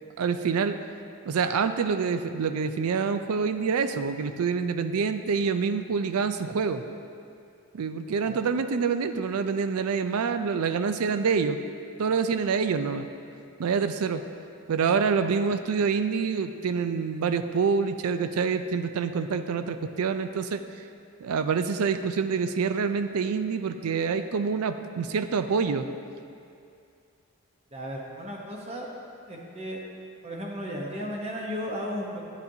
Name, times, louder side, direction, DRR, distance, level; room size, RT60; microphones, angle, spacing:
voice 1, 0.2-0.8 1.3-6.8 7.7-11.6 12.0-13.1 13.6-14.2 14.7-20.6 21.2-25.9, right 5 dB, 85° right, 10 dB, 0.4 m, -26 dB
voice 2, 27.7-28.9 29.3-29.8 30.2-32.2, equal, 30° right, -2 dB, 0.9 m, -35 dB
10.0 x 8.1 x 2.8 m, 2.5 s
head